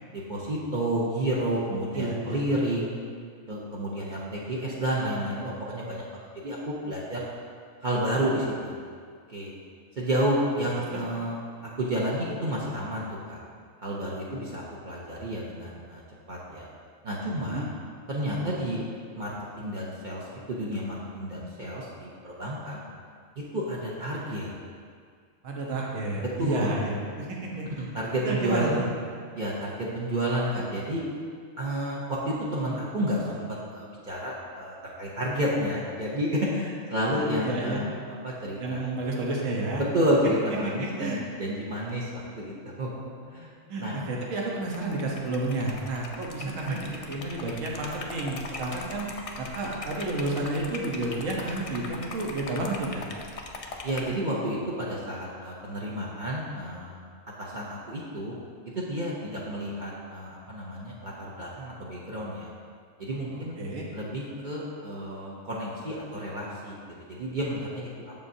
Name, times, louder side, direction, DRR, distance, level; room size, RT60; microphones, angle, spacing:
voice 1, 0.1-2.9 3.5-6.0 6.4-7.2 7.8-8.8 9.3-9.5 10.0-11.4 11.8-13.4 13.8-16.0 16.3-16.7 17.0-17.6 18.1-18.8 19.1-22.8 23.4-24.5 26.4-26.7 27.8-28.8 29.3-31.0 31.6-37.9 38.2-38.8 39.8-43.5 43.8-44.0 46.4-46.8 53.8-57.0 57.4-58.3 58.7-62.5 63.0-63.6 63.9-68.1, right 1 dB, 45° right, -6 dB, 0.9 m, -30 dB
voice 2, 1.9-2.4 10.9-11.0 17.2-17.7 25.4-27.7 28.2-28.9 37.1-37.8 38.6-39.8 40.8-41.2 43.7-49.1 49.4-53.0 63.6-63.8, right 2 dB, 80° right, -2 dB, 1.3 m, -31 dB
Liquid, 44.6-54.2, left 3 dB, 65° left, 0.3 m, -40 dB
7.0 x 7.0 x 2.7 m, 2.1 s
omnidirectional pair, 1.3 m